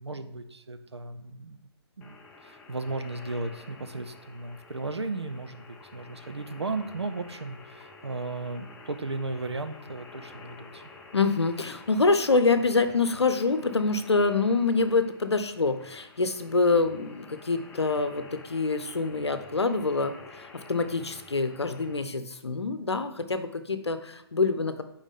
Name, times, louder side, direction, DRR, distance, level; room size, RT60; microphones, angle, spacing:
voice 1, 0.0-1.7 2.0-2.2 2.4-5.7 5.9-10.8, right 3 dB, 75° right, 8 dB, 0.7 m, -35 dB
sound 1, 2.0-22.0, left 3 dB, 10° left, 0.6 m, -50 dB
voice 2, 11.1-24.8, left 3 dB, 75° left, 10 dB, 0.8 m, -26 dB
8.1 x 4.9 x 3.7 m, 0.89 s
figure-of-eight pair, 130°, 14 cm